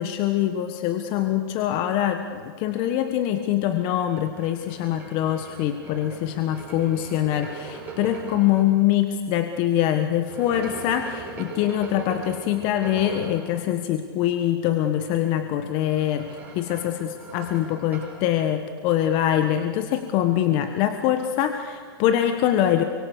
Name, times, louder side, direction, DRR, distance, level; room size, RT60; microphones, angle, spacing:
voice 1, 0.0-22.8, left 11 dB, 40° left, 8 dB, 1.4 m, -24 dB
sound 1, 4.1-8.6 10.2-13.5 15.6-18.2, right 4 dB, 10° right, 7.8 m, -40 dB
29.0 x 24.5 x 6.8 m, 2.1 s
supercardioid pair, 150°, 13 cm